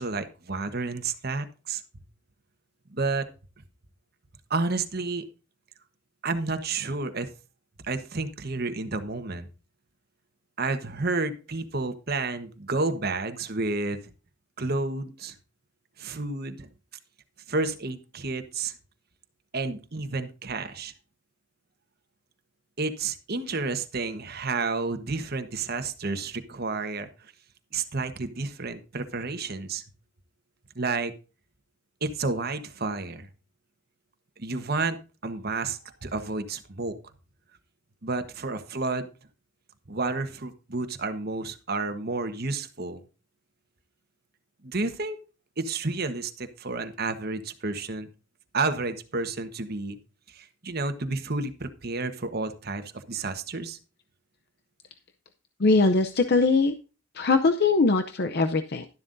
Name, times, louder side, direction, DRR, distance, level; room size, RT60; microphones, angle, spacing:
voice 1, 0.0-2.0 2.9-3.3 4.5-5.2 6.2-7.3 7.8-9.5 10.6-14.1 14.6-15.3 16.0-16.7 17.5-18.7 19.5-20.9 22.8-27.3 27.7-29.8 30.7-31.1 32.0-33.3 34.4-35.0 35.2-37.0 38.0-39.1 39.9-43.0 44.6-45.2 45.6-48.1 48.5-50.0 50.3-53.8, right 3 dB, 50° right, 9 dB, 1.2 m, -30 dB
voice 2, 55.6-56.7 57.1-58.9, left 3 dB, 55° left, 7 dB, 0.6 m, -21 dB
12.0 x 11.5 x 2.6 m, 0.34 s
head